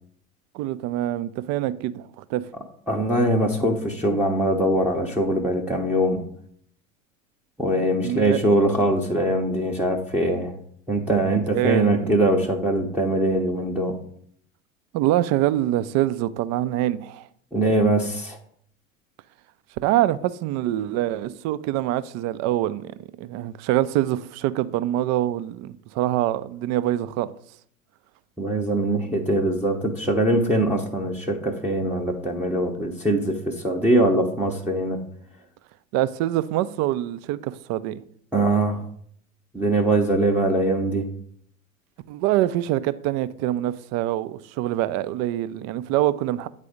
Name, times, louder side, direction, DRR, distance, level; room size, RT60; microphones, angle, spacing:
voice 1, 0.5-2.5 8.0-8.4 11.4-12.2 14.9-17.3 19.8-22.9 23.2-27.3 35.9-38.0 42.1-46.5, right 14 dB, 40° right, 0.5 m, -25 dB
voice 2, 2.9-6.2 7.6-10.5 10.9-13.9 17.5-18.4 28.4-35.0 38.3-38.8 39.5-41.1, right 1 dB, 5° right, 0.8 m, -22 dB
8.5 x 4.1 x 5.0 m
figure-of-eight pair, 75°, 40 cm